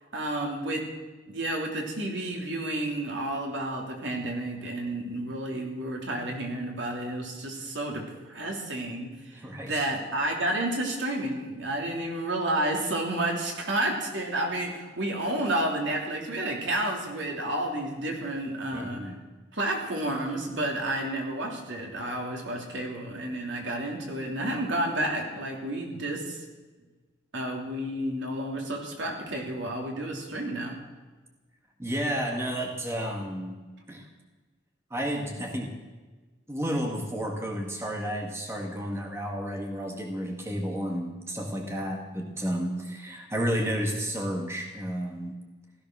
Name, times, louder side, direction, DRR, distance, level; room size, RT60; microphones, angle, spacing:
voice 1, 0.1-0.9 1.3-9.3 9.6-19.1 19.5-26.4 27.3-30.7, right 1 dB, 75° right, 1 dB, 3.1 m, -31 dB
voice 2, 9.3-9.8 18.7-19.2 31.8-33.6 33.9-34.1 34.9-35.7 36.5-45.4, equal, 15° right, 1 dB, 1.7 m, -31 dB
16.0 x 13.5 x 6.2 m, 1.3 s
head